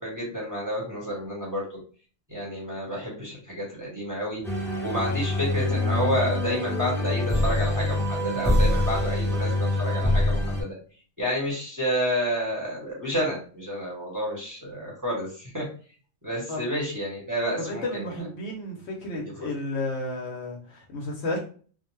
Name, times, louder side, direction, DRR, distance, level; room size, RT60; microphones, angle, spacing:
voice 1, 0.0-1.8 2.3-4.4 4.8-10.7 11.2-15.7 16.2-18.3 19.4-19.5, equal, 15° right, -5 dB, 0.9 m, -30 dB
sound 1, 4.4-10.6, left 1 dB, 5° left, 0.5 m, -25 dB
voice 2, 17.6-21.4, left 2 dB, 65° left, 0 dB, 0.8 m, -32 dB
2.5 x 2.1 x 3.0 m, 0.41 s
omnidirectional pair, 1.3 m